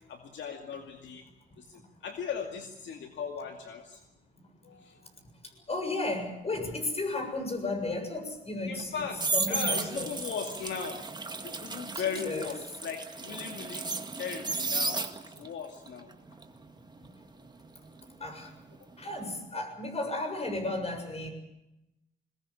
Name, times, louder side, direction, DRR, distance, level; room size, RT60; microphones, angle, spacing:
voice 1, 0.1-1.3 1.6-4.0 4.6-5.0 8.7-9.2 9.5-11.0 11.4-13.9 14.2-16.1, left 6 dB, 65° left, 4 dB, 2.4 m, -38 dB
voice 2, 5.5-8.9 9.3-10.1 12.0-12.5 18.2-18.6 19.0-21.3, left 2 dB, 30° left, 6 dB, 7.2 m, -34 dB
sound 1, 8.8-15.5 15.9-18.8 19.0-19.4, right 3 dB, 20° right, 2.0 m, -34 dB
21.5 x 21.0 x 8.7 m, 0.91 s
cardioid pair, 90°, 20 cm